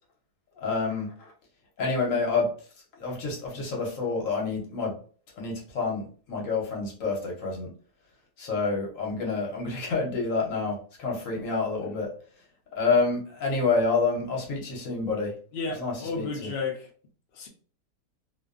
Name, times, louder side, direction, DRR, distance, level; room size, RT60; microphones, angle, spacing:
voice 1, 0.6-1.3 1.8-2.5 3.0-5.0 5.4-7.7 8.4-12.1 12.8-15.3 15.8-16.5, left 4 dB, 60° left, 1.1 m, -28 dB
voice 2, 15.5-16.9 17.3-17.5, left 4 dB, 90° left, 0.5 m, -33 dB
2.6 x 2.2 x 2.3 m
omnidirectional pair, 1.7 m